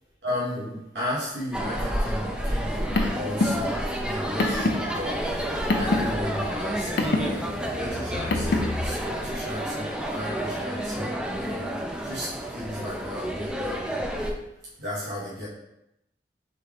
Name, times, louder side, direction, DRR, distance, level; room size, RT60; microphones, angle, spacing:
voice 1, 0.2-5.2 5.8-14.0 14.8-15.5, left 1 dB, 80° right, -8 dB, 1.4 m, -34 dB
sound 1, 1.5-14.3, equal, 5° right, 0.4 m, -30 dB
Car, 2.6-8.8, left 2 dB, 70° left, 0.6 m, -28 dB
4.2 x 3.6 x 3.4 m, 0.85 s
head